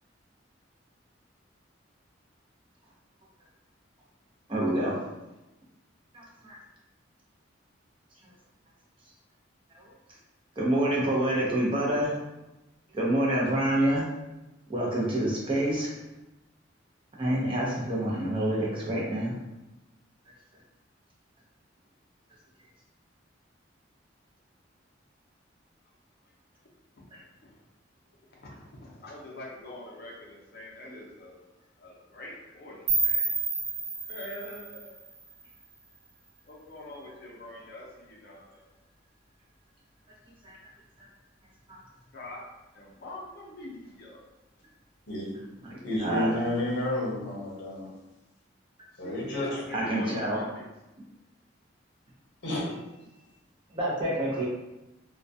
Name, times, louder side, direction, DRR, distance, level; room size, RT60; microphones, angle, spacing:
voice 1, 4.5-5.0 6.1-6.6 9.8-9.9 10.6-12.1 12.9-14.1 14.7-15.9 17.2-19.4 30.9-31.0 40.4-40.6 41.7-41.8 45.6-46.3 49.7-50.4 53.7-54.5, right 1 dB, 25° right, -5 dB, 0.6 m, -27 dB
voice 2, 28.3-31.4 31.8-33.4 34.1-35.0 36.5-38.6 42.1-42.4 42.7-44.2 49.0-50.7, left 1 dB, 55° left, -3 dB, 0.5 m, -44 dB
sound 1, 32.9-35.8, right 4 dB, 75° right, 0.7 m, -30 dB
voice 3, 45.8-47.9 49.0-49.5 52.4-52.7, left 1 dB, 75° left, -4 dB, 0.8 m, -30 dB
2.2 x 2.2 x 2.6 m, 0.98 s
head